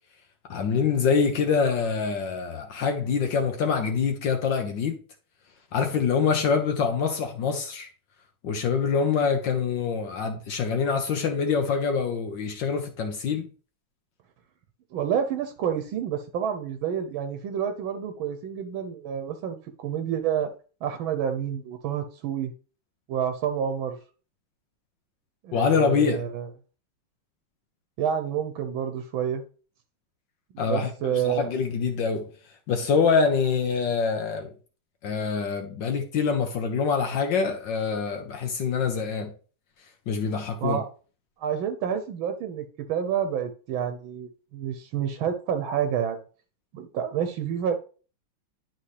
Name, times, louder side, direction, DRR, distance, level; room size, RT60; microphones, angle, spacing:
voice 1, 0.5-5.0 5.7-7.9 8.4-13.5 25.5-26.2 30.6-32.3 32.7-34.5 35.0-39.3 40.1-40.8, left 5 dB, 65° left, 1.4 m, -25 dB
voice 2, 14.9-20.5 20.8-22.5 23.1-24.0 25.4-26.5 28.0-29.4 30.5-31.5 40.6-40.9 41.4-46.2 46.7-47.8, right 8 dB, 80° right, 1.5 m, -29 dB
10.5 x 4.3 x 3.2 m
omnidirectional pair, 2.3 m